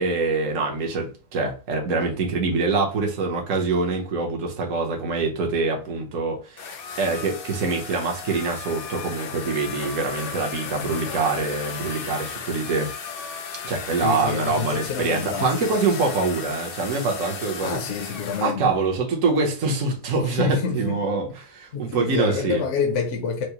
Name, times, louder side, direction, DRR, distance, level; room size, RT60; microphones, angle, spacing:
voice 1, 0.0-12.9 13.6-17.8 18.4-22.6, right 3 dB, 60° right, 1.2 m, -25 dB
sound 1, 6.6-18.5, left 6 dB, 85° left, 0.5 m, -35 dB
voice 2, 14.0-15.8 17.6-18.8 20.2-21.1 21.7-23.4, left 6 dB, 60° left, 0.9 m, -28 dB
4.7 x 2.0 x 2.8 m
omnidirectional pair, 1.7 m